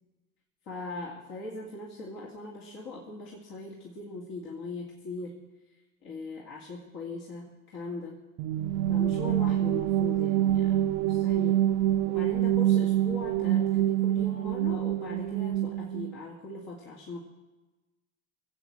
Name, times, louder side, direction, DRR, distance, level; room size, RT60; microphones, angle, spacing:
voice 1, 0.7-5.4 6.0-8.2 8.9-11.7 12.1-17.2, left 3 dB, 65° left, -3 dB, 2.7 m, -40 dB
sound 1, 8.4-16.2, right 12 dB, 60° right, 0.5 m, -26 dB
19.5 x 8.4 x 7.3 m, 1.1 s
hypercardioid pair, 75°, 41 cm